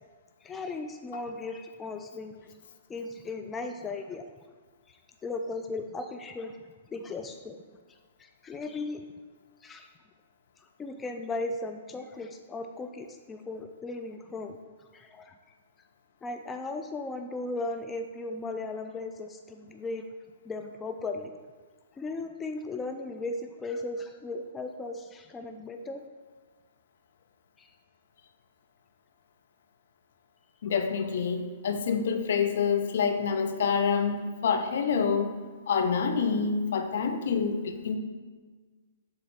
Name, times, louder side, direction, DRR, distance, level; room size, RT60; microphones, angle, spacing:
voice 1, 0.4-2.4 2.9-4.3 4.9-6.6 6.9-7.6 8.2-9.0 9.6-9.9 10.8-14.6 14.9-15.3 16.2-20.1 20.4-21.3 22.0-26.1 27.6-27.7, left 3 dB, 15° left, 6 dB, 0.3 m, -36 dB
voice 2, 30.6-35.3 35.7-38.0, left 6 dB, 65° left, 6 dB, 0.6 m, -27 dB
7.0 x 3.8 x 3.6 m, 1.4 s
hypercardioid pair, 120°, 0 cm